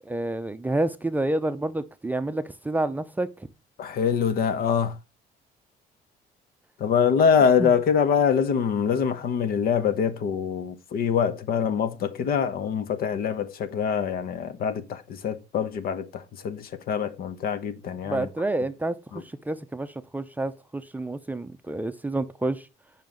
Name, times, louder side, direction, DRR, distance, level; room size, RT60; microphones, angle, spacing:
voice 1, 0.1-3.3 7.6-7.7 18.0-22.7, right 2 dB, 10° right, 0.6 m, -29 dB
voice 2, 3.8-4.9 6.8-18.3 19.1-19.2, left 7 dB, 60° left, 1.0 m, -24 dB
9.2 x 5.7 x 3.8 m
cardioid pair, 110°, 17 cm